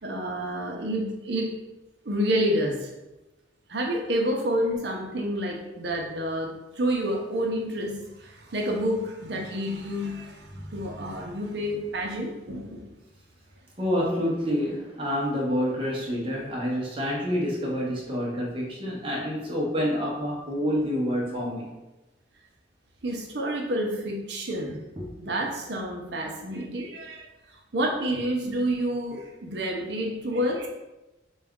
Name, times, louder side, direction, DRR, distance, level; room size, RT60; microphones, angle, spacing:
voice 1, 0.0-1.5 2.0-2.9 3.7-6.5 6.8-12.8 23.0-24.8 25.2-27.3 27.7-30.7, equal, 60° right, 0 dB, 0.7 m, -29 dB
voice 2, 13.8-21.7 24.9-25.1, equal, 30° right, -4 dB, 0.7 m, -28 dB
4.0 x 2.3 x 3.5 m, 1.0 s
head